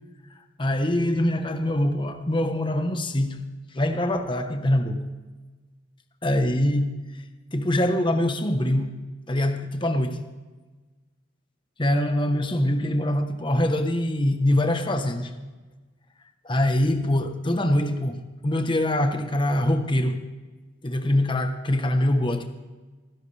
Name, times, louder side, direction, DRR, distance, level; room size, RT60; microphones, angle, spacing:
voice 1, 0.6-3.4 3.7-5.0 6.2-7.0 7.5-9.0 9.3-10.2 11.8-15.3 16.4-20.2 20.8-22.4, left 1 dB, 25° left, 1.0 m, -24 dB
28.5 x 11.0 x 3.4 m
head